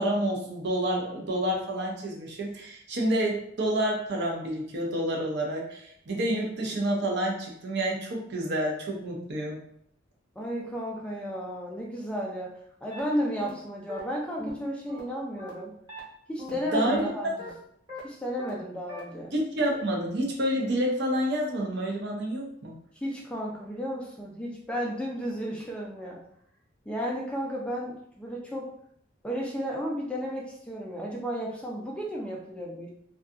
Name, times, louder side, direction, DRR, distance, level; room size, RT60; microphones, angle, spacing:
voice 1, 0.0-9.6 16.5-17.3 19.3-22.7, right 1 dB, 60° right, -1 dB, 0.6 m, -29 dB
voice 2, 10.4-12.5 12.8-15.7 16.3-17.5 18.0-19.3 23.0-26.2 26.9-28.7 29.2-32.9, equal, 5° left, -2 dB, 0.3 m, -33 dB
sound 1, 12.9-13.0 13.4-13.5 13.9-14.0 14.4-14.5 14.9-15.0 15.4-15.5 15.9-16.0 16.4-16.5 16.9-17.0 17.4-17.5 17.9-18.0 18.4-18.5 18.9-19.0, left 1 dB, 25° right, 0.8 m, -40 dB
2.6 x 2.3 x 2.4 m, 0.69 s
head